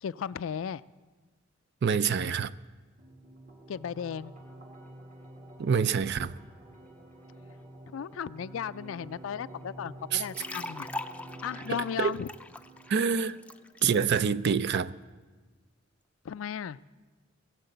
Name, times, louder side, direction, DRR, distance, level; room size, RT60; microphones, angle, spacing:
voice 1, 0.0-0.8 3.7-4.3 7.9-10.9 11.4-12.3 16.2-16.8, left 8 dB, 75° left, 0.4 m, -35 dB
voice 2, 1.8-2.5 5.6-6.3 10.1-10.2 12.0-12.1 12.9-13.4 13.8-14.9, right 6 dB, 55° right, 0.4 m, -26 dB
sound 1, 3.0-14.0, right 1 dB, 40° right, 1.8 m, -49 dB
sound 2, 10.1-14.0, left 1 dB, 5° left, 0.4 m, -41 dB
20.0 x 7.4 x 7.9 m
head